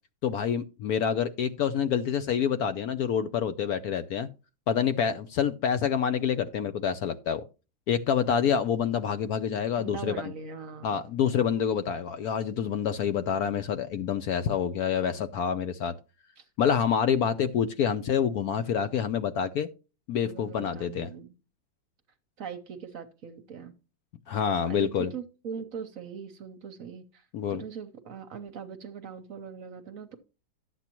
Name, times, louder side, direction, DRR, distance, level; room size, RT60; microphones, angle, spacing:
voice 1, 0.2-4.3 4.7-7.4 7.9-10.1 10.8-15.9 16.6-19.7 20.1-21.1 24.3-25.1 27.3-27.6, left 8 dB, 70° left, 0.9 m, -27 dB
voice 2, 9.7-11.0 16.4-16.5 20.2-21.4 22.4-23.7 24.7-30.2, right 6 dB, 55° right, 1.0 m, -41 dB
12.0 x 8.3 x 2.9 m
omnidirectional pair, 2.0 m